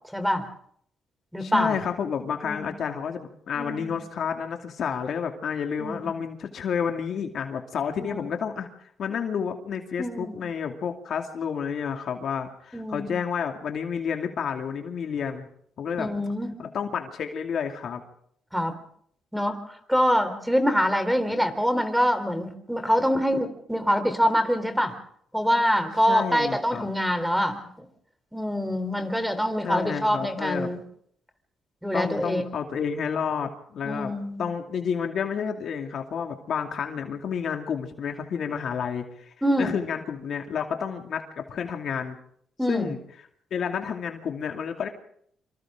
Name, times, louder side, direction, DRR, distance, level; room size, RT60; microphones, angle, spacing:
voice 1, 0.1-0.5 1.3-1.8 2.4-2.7 3.6-3.9 5.8-6.1 10.0-10.4 12.7-13.1 16.0-16.5 18.5-18.7 19.3-25.0 25.3-27.9 28.3-30.8 31.8-32.4 33.8-34.4 39.4-39.8 42.6-42.9, equal, ahead, 8 dB, 3.7 m, -25 dB
voice 2, 1.4-8.7 9.0-15.5 15.8-16.1 16.6-18.0 26.1-26.9 29.6-30.7 31.9-34.1 34.4-42.2 42.7-43.0 43.5-44.9, left 7 dB, 60° left, 4 dB, 2.4 m, -30 dB
26.5 x 26.0 x 3.8 m, 0.65 s
cardioid pair, 90°, 0 cm